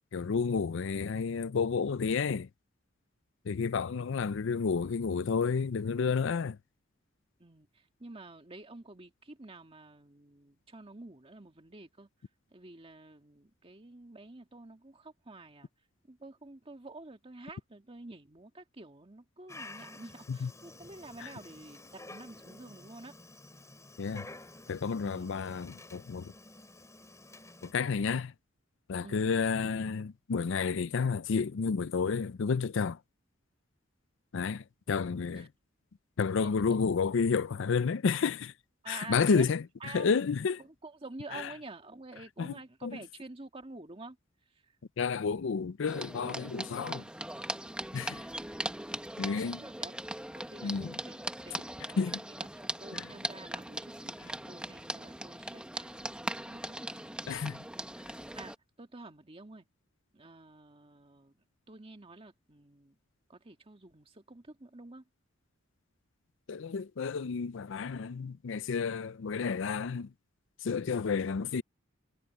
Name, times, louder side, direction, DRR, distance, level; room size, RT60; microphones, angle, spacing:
voice 1, 0.1-2.5 3.4-6.6 20.3-20.5 21.2-21.3 24.0-24.3 24.7-26.3 27.6-28.3 28.9-33.0 34.3-35.5 36.2-38.5 38.9-40.6 41.3-41.5 42.4-42.5 42.8-43.0 45.0-47.0 47.9-48.2 49.2-49.6 50.6-51.0 52.0-52.2 52.9-53.1 57.3-57.7 66.5-70.1 70.6-71.6, left 5 dB, 70° left, 0.5 m, -31 dB
voice 2, 7.4-12.1 12.5-15.7 16.1-23.1 25.0-25.3 29.0-29.2 35.3-35.5 38.8-39.5 39.8-40.2 40.6-44.2 44.6-44.7 49.6-50.0 50.3-52.0 52.4-56.8 58.3-59.7 60.1-63.0 63.3-65.0, right 2 dB, 30° right, 1.9 m, -49 dB
Dog, 19.5-27.7, left 2 dB, 15° left, 5.0 m, -51 dB
sound 1, 45.9-58.5, right 1 dB, 5° right, 1.2 m, -40 dB
head